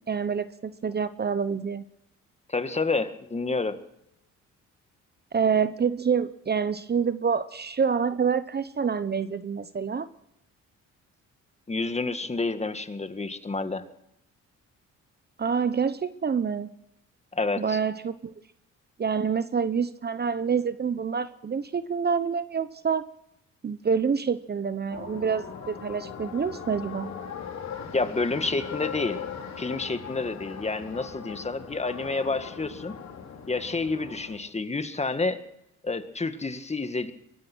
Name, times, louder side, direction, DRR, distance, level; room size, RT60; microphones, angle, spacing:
voice 1, 0.1-1.8 5.3-10.1 15.4-16.7 17.6-18.3 19.0-23.0 23.6-27.1, right 6 dB, 35° right, 13 dB, 0.9 m, -27 dB
voice 2, 2.5-3.8 11.7-13.8 17.3-17.8 27.9-29.2 29.6-32.9 33.5-35.4 35.8-37.1, left 3 dB, 20° left, 10 dB, 1.8 m, -29 dB
sound 1, 24.9-34.4, left 7 dB, 60° left, 4.3 m, -39 dB
23.0 x 19.5 x 6.3 m, 0.83 s
cardioid pair, 90°, 30 cm